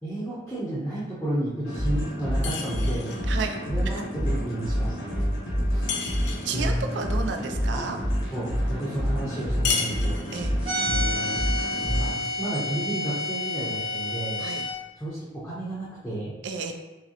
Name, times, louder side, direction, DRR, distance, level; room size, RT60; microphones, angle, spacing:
voice 1, 0.0-3.1 3.7-5.3 5.7-5.9 6.5-6.8 7.7-7.8 8.3-10.2 10.8-11.4 11.8-14.4 15.0-16.3, right 1 dB, 10° left, -9 dB, 0.7 m, -32 dB
sound 1, 1.6-12.1, equal, 90° left, 0.9 m, -28 dB
sound 2, 2.4-3.3 5.9-6.7 9.6-10.6, left 6 dB, 65° left, 0.4 m, -31 dB
voice 2, 6.4-8.0 10.3-10.5 14.4-14.6 16.4-16.7, right 4 dB, 70° right, 5 dB, 0.4 m, -31 dB
sound 3, 10.6-14.7, left 1 dB, 25° right, 1.2 m, -29 dB
4.7 x 2.1 x 2.9 m, 1.1 s
head